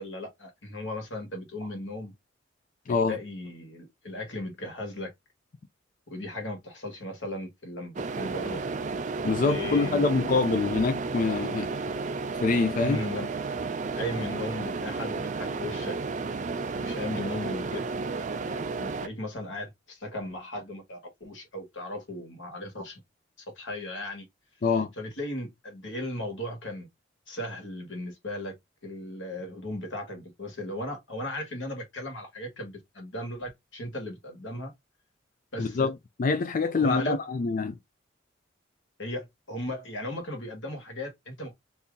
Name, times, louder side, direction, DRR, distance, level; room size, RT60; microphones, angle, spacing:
voice 1, 0.0-2.1 2.9-5.1 6.1-8.6 9.4-10.3 12.8-13.3 13.9-16.0 16.8-17.8 18.1-23.0 23.6-24.3 25.0-26.9 27.3-28.6 28.8-34.7 35.5-35.9 36.6-37.2 39.0-41.5, left 1 dB, 90° left, 1.5 m, -36 dB
voice 2, 2.9-3.2 9.2-12.0 12.3-13.0 24.6-24.9 35.6-35.9 36.2-37.7, left 4 dB, 45° left, 0.4 m, -25 dB
sound 1, 8.0-19.1, right 4 dB, 40° right, 0.4 m, -32 dB
2.8 x 2.7 x 3.6 m
head